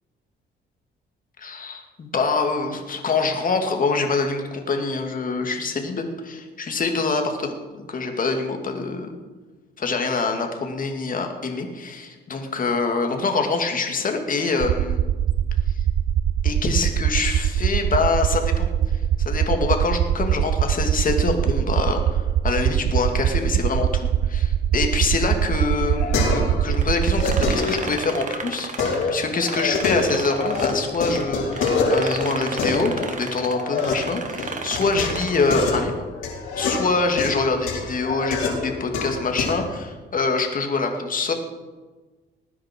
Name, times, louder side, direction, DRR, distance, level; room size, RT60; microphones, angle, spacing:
voice 1, 1.4-9.1 9.8-15.0 16.4-18.7 19.2-36.0 36.6-41.3, left 4 dB, 45° left, 4 dB, 2.6 m, -25 dB
sound 1, 14.6-27.5, right 10 dB, 70° right, 0.6 m, -22 dB
sound 2, 25.3-26.7 27.0-28.3 28.8-30.7 30.9-33.9 34.4-39.7, left 4 dB, 85° left, 4.6 m, -26 dB
sound 3, 26.7-31.2 31.5-35.6, right 4 dB, 40° right, 1.7 m, -34 dB
19.5 x 9.9 x 4.7 m, 1.3 s
cardioid pair, 90°, 20 cm